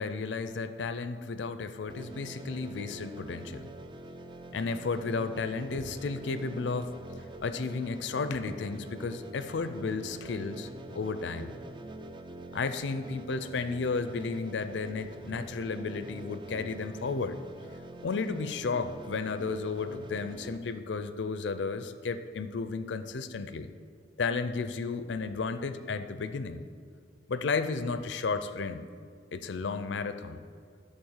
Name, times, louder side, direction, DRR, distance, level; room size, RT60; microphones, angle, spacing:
voice 1, 0.0-3.7 4.5-6.9 7.4-11.5 12.5-17.4 18.0-23.7 24.2-26.6 27.3-28.8 29.3-30.4, left 4 dB, 75° left, 11 dB, 0.5 m, -33 dB
sound 1, 1.9-20.6, right 1 dB, 25° right, 0.4 m, -45 dB
11.0 x 4.1 x 7.2 m, 2.1 s
head